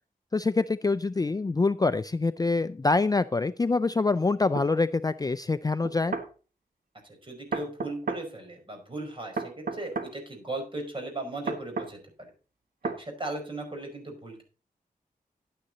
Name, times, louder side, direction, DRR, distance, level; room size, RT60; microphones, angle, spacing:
voice 1, 0.3-6.1, left 3 dB, 25° left, 13 dB, 0.4 m, -25 dB
sound 1, 4.6-4.7 5.8-6.3 7.5-8.3 9.4-10.1 11.5-11.9 12.8-13.0, right 4 dB, 75° right, 1.4 m, -32 dB
voice 2, 7.2-12.3 12.8-14.4, right 2 dB, 35° right, 3 dB, 5.1 m, -37 dB
11.0 x 9.6 x 4.0 m, 0.35 s
wide cardioid pair, 100°, 15 cm